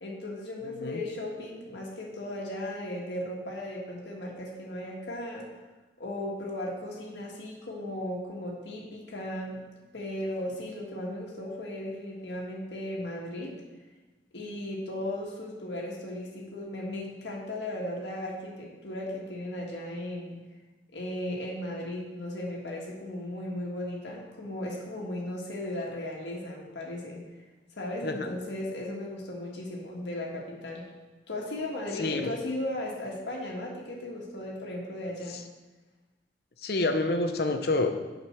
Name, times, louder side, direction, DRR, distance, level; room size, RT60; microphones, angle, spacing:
voice 1, 0.0-5.5 6.0-13.6 14.3-20.4 20.9-27.2 27.7-30.9 31.3-35.4, left 1 dB, 85° left, -2 dB, 1.6 m, -36 dB
voice 2, 0.6-1.0 28.0-28.3 31.9-32.3 35.3-35.4 36.6-37.9, left 2 dB, 60° left, 6 dB, 0.7 m, -28 dB
7.3 x 5.2 x 5.8 m, 1.2 s
head